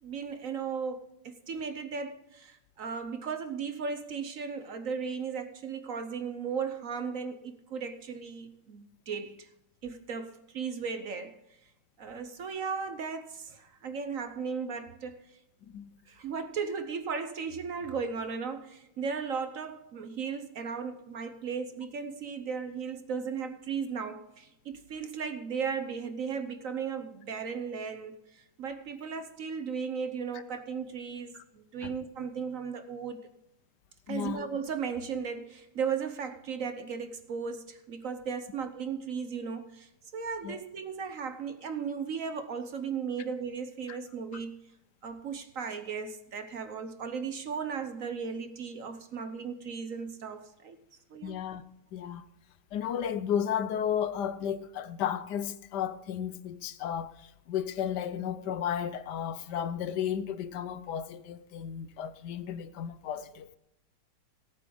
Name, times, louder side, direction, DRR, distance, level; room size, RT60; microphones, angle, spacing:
voice 1, 0.0-9.5 9.8-11.3 12.0-15.4 16.1-33.2 34.1-44.5 45.0-50.8 51.1-51.4, right 6 dB, 55° right, 1.0 m, -36 dB
voice 2, 34.1-34.4 40.4-40.6 43.9-44.0 51.2-51.6 51.9-52.3 52.7-63.6, left 9 dB, 70° left, 1.2 m, -33 dB
18.0 x 8.6 x 3.9 m
omnidirectional pair, 2.1 m